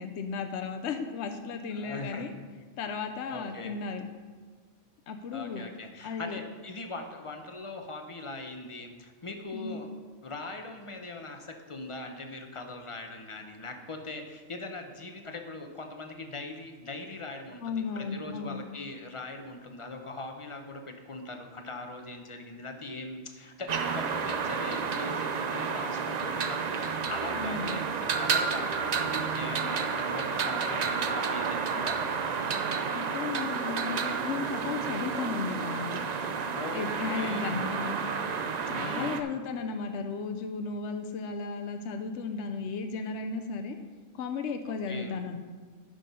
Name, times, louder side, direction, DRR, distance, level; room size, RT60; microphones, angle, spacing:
voice 1, 0.0-2.3 2.8-4.1 5.1-5.6 6.0-6.4 9.5-9.8 17.6-18.6 27.3-27.8 32.9-36.0 36.7-38.0 38.7-43.8 44.1-45.4, left 5 dB, 65° left, 6 dB, 0.9 m, -35 dB
voice 2, 1.7-2.3 3.3-3.8 5.3-9.9 10.2-32.0 36.5-37.9 38.7-39.2 44.9-45.1, left 2 dB, 30° left, 5 dB, 0.8 m, -41 dB
sound 1, 23.7-39.2, right 5 dB, 55° right, 0.5 m, -31 dB
10.5 x 6.3 x 5.4 m, 1.5 s
omnidirectional pair, 1.3 m